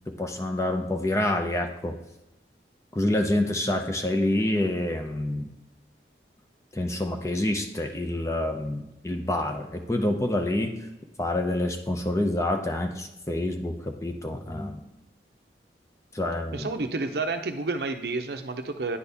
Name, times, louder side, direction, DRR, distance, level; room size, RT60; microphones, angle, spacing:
voice 1, 0.1-2.0 2.9-5.5 6.7-10.8 11.2-14.8 16.1-16.7, left 1 dB, 15° left, 5 dB, 0.5 m, -27 dB
voice 2, 16.5-19.0, right 3 dB, 65° right, 7 dB, 0.6 m, -30 dB
9.7 x 4.1 x 3.4 m, 0.97 s
head